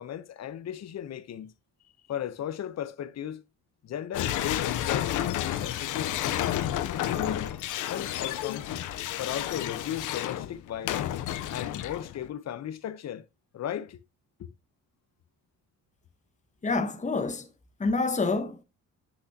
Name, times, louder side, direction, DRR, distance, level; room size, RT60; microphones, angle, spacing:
voice 1, 0.0-1.5 2.1-3.4 3.8-6.1 6.5-7.5 7.9-8.7 9.2-11.2 11.5-13.3 13.5-14.0 14.4-14.5, left 10 dB, 60° left, 1.0 m, -36 dB
sound 1, 4.1-12.3, left 12 dB, 85° left, 0.9 m, -31 dB
voice 2, 16.6-17.5 17.8-18.6, left 3 dB, 25° left, 1.3 m, -27 dB
8.1 x 6.4 x 2.9 m
cardioid pair, 90°, 30 cm